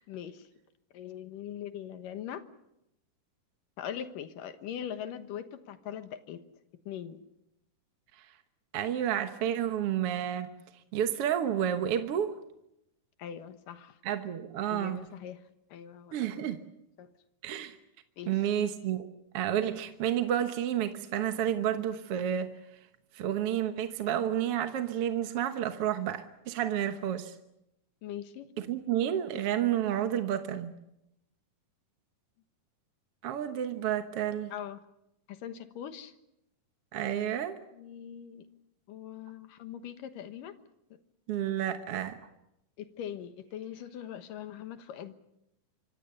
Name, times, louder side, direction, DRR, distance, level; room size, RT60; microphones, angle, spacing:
voice 1, 0.1-0.5 0.9-2.4 3.8-6.4 6.9-7.2 13.2-14.0 14.7-15.4 15.7-16.4 17.0-17.1 18.2-18.4 28.0-28.5 34.5-34.8 35.3-36.1 37.7-38.4 38.9-40.6 42.8-45.1, left 9 dB, 85° left, 9 dB, 2.9 m, -41 dB
voice 2, 8.7-10.5 10.9-12.3 14.0-15.0 16.1-16.6 17.4-17.8 18.3-19.1 19.3-22.5 23.1-27.3 28.6-30.7 33.2-34.5 36.9-37.6 41.3-42.2, right 10 dB, 60° right, 7 dB, 1.7 m, -30 dB
25.5 x 25.0 x 6.8 m, 0.85 s
omnidirectional pair, 3.8 m